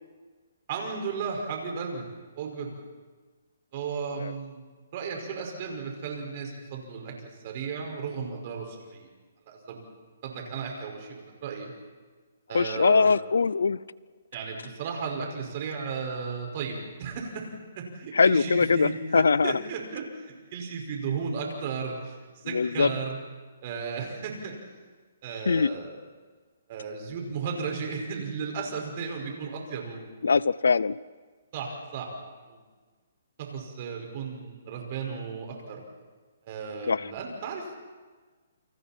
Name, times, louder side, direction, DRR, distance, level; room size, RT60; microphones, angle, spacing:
voice 1, 0.7-2.1 2.3-2.7 3.7-4.6 4.9-9.1 9.5-9.8 10.2-11.7 12.5-13.1 14.3-17.5 17.8-23.2 23.6-24.6 25.2-26.0 26.7-30.2 31.5-32.1 32.5-32.6 33.4-35.8 36.5-37.7, right 5 dB, 40° right, 1 dB, 5.5 m, -35 dB
voice 2, 12.5-13.8 18.1-19.5 22.5-22.9 25.5-25.7 30.2-31.0 36.9-37.1, left 5 dB, 90° left, 21 dB, 0.6 m, -22 dB
29.0 x 26.5 x 4.5 m, 1.4 s
hypercardioid pair, 155°, 0 cm